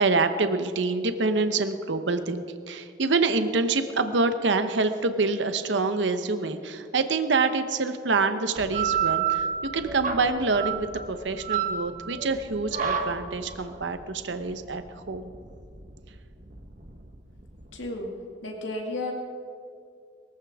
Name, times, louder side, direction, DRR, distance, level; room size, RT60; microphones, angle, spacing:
voice 1, 0.0-9.5 9.7-15.3, right 3 dB, 70° right, 8 dB, 0.9 m, -26 dB
sound 1, 8.6-17.7, right 8 dB, 45° right, 1.3 m, -30 dB
voice 2, 17.7-18.1 18.4-19.1, left 2 dB, 85° left, 1 dB, 2.1 m, -32 dB
22.0 x 14.5 x 3.6 m, 2.3 s
head